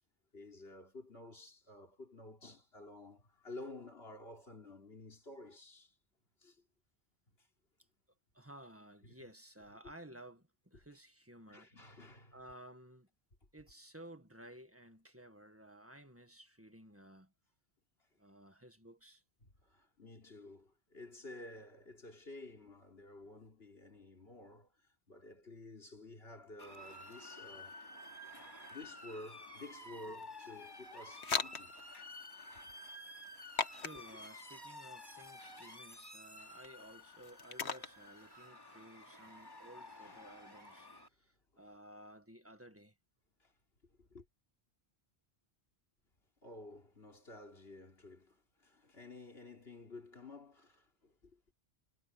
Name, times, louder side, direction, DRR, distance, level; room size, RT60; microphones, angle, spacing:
voice 1, 0.3-6.0 6.4-6.6 7.4-7.5 9.0-9.1 11.5-12.4 19.4-27.8 28.7-31.7 33.7-33.8 40.0-40.2 41.5-41.6 43.4-43.5 43.8-44.3 46.4-51.5, left 2 dB, 70° left, 3.6 m, -52 dB
voice 2, 8.3-11.7 12.3-13.1 13.5-17.3 18.2-19.2 33.7-43.0, right 1 dB, 15° right, 1.7 m, -55 dB
Motor vehicle (road) / Siren, 26.6-41.1, left 1 dB, 20° left, 2.8 m, -52 dB
sound 1, 29.8-38.5, left 5 dB, 85° left, 1.6 m, -43 dB
omnidirectional pair, 1.1 m